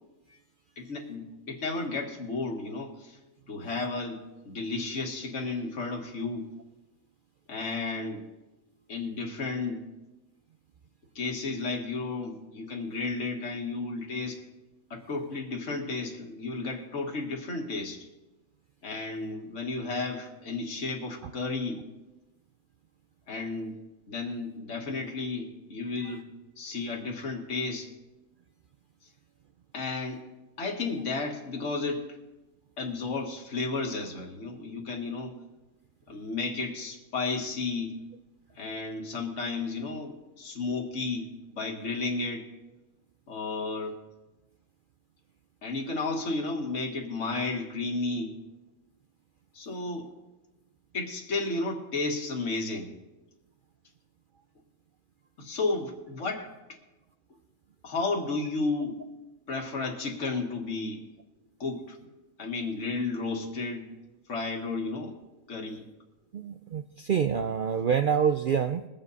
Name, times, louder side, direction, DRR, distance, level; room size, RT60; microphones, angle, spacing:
voice 1, 0.8-3.2 3.5-6.5 7.5-8.2 8.9-9.8 11.2-14.4 14.9-18.1 18.8-21.8 23.3-23.8 24.1-26.3 26.6-27.9 29.7-30.2 30.6-32.1 32.8-35.4 36.1-37.9 38.6-42.5 43.3-44.0 45.6-48.4 49.5-50.1 50.9-52.9 55.4-56.5 57.8-59.0 59.5-61.1 61.6-62.0 62.4-63.9 64.3-65.2 65.5-65.8, left 3 dB, 60° left, 1 dB, 2.0 m, -33 dB
voice 2, 66.3-68.9, right 7 dB, 75° right, 8 dB, 0.4 m, -27 dB
22.0 x 7.6 x 4.1 m, 1.1 s
omnidirectional pair, 1.5 m